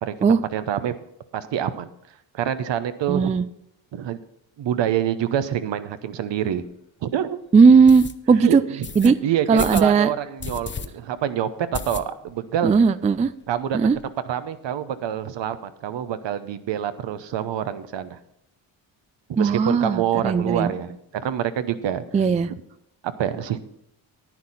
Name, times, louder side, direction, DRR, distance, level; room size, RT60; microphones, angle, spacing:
voice 1, 0.0-0.9 1.3-1.9 2.3-3.4 3.9-4.2 4.6-6.6 7.0-7.4 8.3-12.7 13.5-13.8 14.3-18.2 19.3-22.0 22.5-22.6 23.0-23.6, right 10 dB, 70° right, 12 dB, 0.9 m, -26 dB
voice 2, 3.1-3.4 7.5-8.6 9.0-9.2 9.5-10.1 12.6-13.3 13.7-14.0 19.4-20.7 22.1-22.5, right 5 dB, 20° right, 15 dB, 0.3 m, -17 dB
sound 1, 6.5-6.6 7.0-7.1 7.9-8.1 8.8-9.1 9.6-9.9 10.4-10.9 11.2-11.3 11.7-12.4 12.7-12.8 13.1-13.2 13.4-14.1, left 5 dB, 25° left, 0.6 m, -33 dB
10.5 x 9.7 x 4.1 m, 0.78 s
cardioid pair, 80°, 46 cm